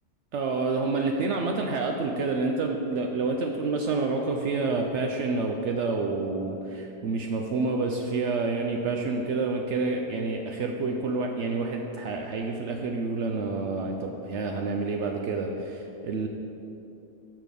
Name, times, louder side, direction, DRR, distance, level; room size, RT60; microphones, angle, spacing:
voice 1, 0.3-16.3, right 3 dB, 65° right, 2 dB, 0.7 m, -28 dB
6.5 x 6.0 x 5.2 m, 2.9 s
omnidirectional pair, 1.5 m